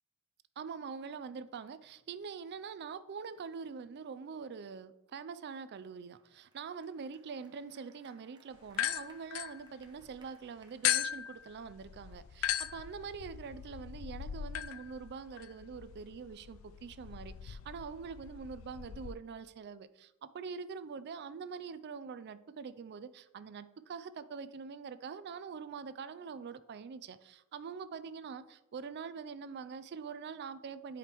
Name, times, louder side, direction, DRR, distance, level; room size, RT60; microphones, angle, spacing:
voice 1, 0.6-31.0, right 5 dB, 50° right, 0.4 m, -44 dB
sound 1, 6.2-11.0, right 3 dB, 20° right, 0.9 m, -66 dB
sound 2, 8.7-10.2 10.8-19.1, left 12 dB, 65° left, 0.3 m, -38 dB
10.5 x 5.0 x 3.0 m
head